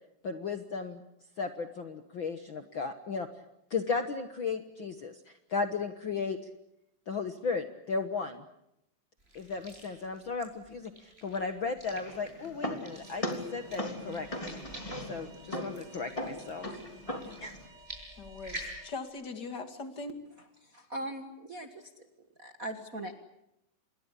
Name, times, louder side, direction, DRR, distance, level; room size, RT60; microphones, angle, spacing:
voice 1, 0.2-1.0 1.4-3.3 3.7-5.1 5.5-6.4 7.1-8.4 9.3-14.6 15.1-16.7 17.4-17.5, left 4 dB, 60° left, 8 dB, 1.2 m, -35 dB
sound 1, 9.2-18.8, right 1 dB, 15° right, 7.5 m, -49 dB
sound 2, 11.9-17.7, left 1 dB, 10° left, 2.9 m, -39 dB
Alarm, 12.9-19.1, right 2 dB, 70° right, 9.0 m, -57 dB
voice 2, 18.2-20.2, left 3 dB, 35° left, 7 dB, 2.4 m, -41 dB
voice 3, 20.7-21.9 22.4-23.1, right 1 dB, 45° right, 5 dB, 1.1 m, -39 dB
27.5 x 21.5 x 8.4 m, 0.82 s
omnidirectional pair, 4.1 m